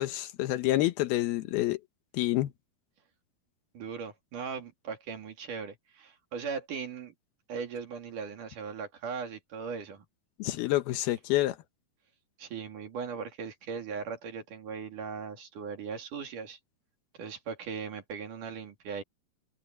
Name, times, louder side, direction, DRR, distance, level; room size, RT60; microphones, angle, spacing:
voice 1, 0.0-1.8 2.1-2.5 10.4-11.6, left 16 dB, 75° left, 2.9 m, -28 dB
voice 2, 3.7-7.1 7.5-10.0 12.4-16.6 17.2-19.0, right 6 dB, 55° right, 4.0 m, -38 dB
omnidirectional pair, 4.7 m